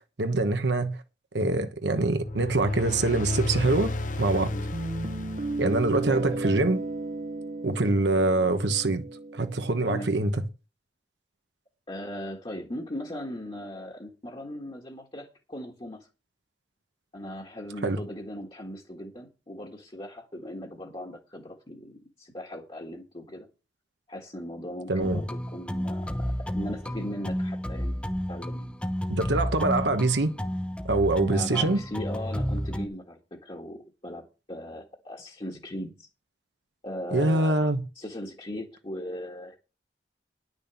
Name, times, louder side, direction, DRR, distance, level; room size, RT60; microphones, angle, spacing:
voice 1, 0.2-1.0 1.3-4.5 5.6-6.8 7.6-9.0 9.3-10.3 17.8-18.0 24.9-25.2 29.1-30.3 30.8-31.8 37.1-37.8, right 2 dB, 80° right, 1.2 m, -24 dB
sound 1, 2.0-6.7, left 2 dB, 45° left, 0.8 m, -33 dB
Guitar, 4.7-9.8, right 2 dB, 40° right, 0.7 m, -34 dB
voice 2, 6.1-6.4 9.8-10.1 11.9-16.1 17.1-23.5 24.1-28.8 31.3-36.1 36.8-37.7 37.9-39.6, left 1 dB, 30° left, 1.5 m, -38 dB
sound 2, 25.0-32.9, equal, 5° left, 0.8 m, -31 dB
10.5 x 6.4 x 6.9 m
head